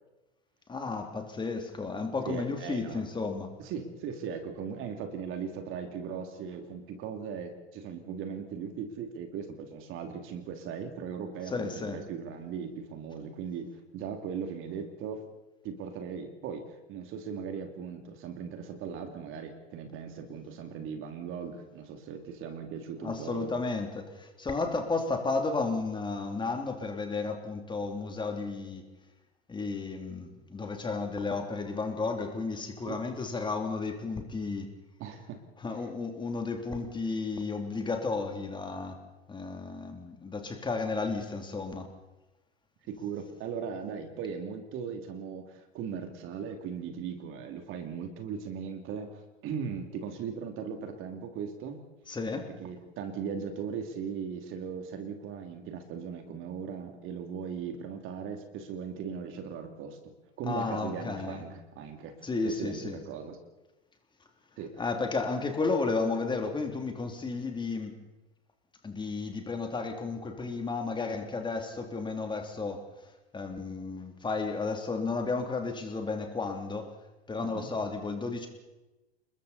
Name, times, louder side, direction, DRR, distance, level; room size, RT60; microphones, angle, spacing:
voice 1, 0.7-3.5 11.5-12.0 23.0-28.9 29.5-34.7 35.6-39.0 39.3-41.9 52.1-52.5 60.4-61.4 62.2-63.0 64.8-68.0 68.8-72.8 73.3-76.9 77.3-78.5, left 3 dB, 15° left, 4 dB, 3.0 m, -33 dB
voice 2, 2.3-3.1 3.6-13.7 13.9-15.2 15.6-23.5 32.9-33.0 35.0-35.4 42.9-51.8 52.4-60.0 60.4-62.1 62.4-63.4 64.6-64.8 77.4-77.7, right 6 dB, 40° right, 6 dB, 2.9 m, -38 dB
29.5 x 21.0 x 4.3 m, 1.1 s
figure-of-eight pair, 90°, 32 cm